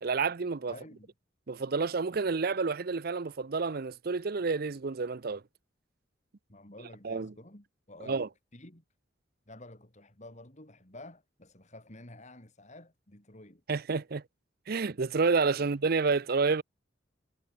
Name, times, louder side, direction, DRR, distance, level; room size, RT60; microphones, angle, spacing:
voice 1, 0.0-0.7 1.5-5.4 7.0-7.3 8.1-8.3 13.7-14.2 14.7-16.6, right 4 dB, 50° right, 0.6 m, -29 dB
voice 2, 0.7-1.1 6.5-8.3 8.5-8.8 9.5-13.6 15.6-15.7, left 1 dB, 40° left, 4.6 m, -50 dB
head